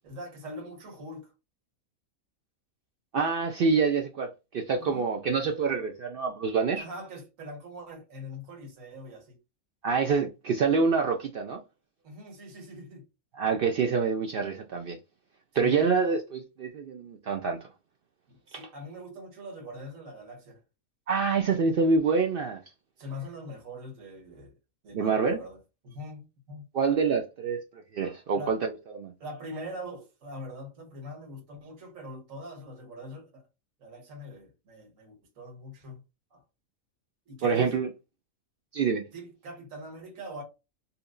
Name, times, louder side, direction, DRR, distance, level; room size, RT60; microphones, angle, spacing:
voice 1, 0.0-1.3 4.8-5.1 6.7-9.4 12.0-13.1 15.5-15.9 18.3-20.6 23.0-24.6 24.8-26.7 28.3-28.6 29.2-33.5 33.8-36.0 36.3-36.4 37.3-37.8 39.1-40.4, equal, 65° right, 1.6 m, -42 dB
voice 2, 3.1-6.8 9.8-11.6 13.4-15.0 15.5-17.6 18.5-18.7 21.1-22.6 24.9-25.4 26.7-27.6 27.9-29.1 37.4-37.9 38.7-39.0, right 5 dB, 80° right, 0.5 m, -26 dB
4.1 x 2.6 x 2.5 m
omnidirectional pair, 1.5 m